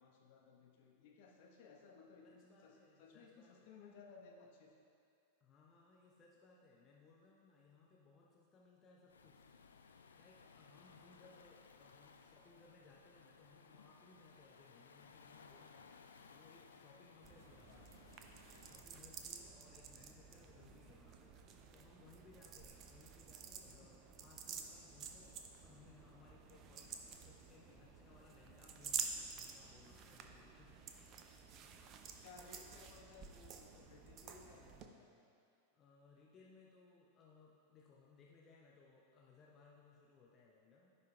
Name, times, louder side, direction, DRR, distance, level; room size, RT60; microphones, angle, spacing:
voice 1, 0.0-4.7 17.7-17.9 20.5-20.8 23.6-23.9 27.7-27.8 32.2-35.2, left 4 dB, 50° left, -1 dB, 1.0 m, -60 dB
voice 2, 2.2-3.7 5.4-9.8 10.1-18.0 18.4-30.9 35.7-41.0, left 4 dB, 25° left, -3 dB, 0.8 m, -65 dB
Waves surf, 9.1-18.9, left 5 dB, 70° left, 0.4 m, -62 dB
sound 1, 17.2-34.9, right 6 dB, 35° right, 0.6 m, -50 dB
15.0 x 5.4 x 2.3 m, 2.4 s
figure-of-eight pair, 90°, 0 cm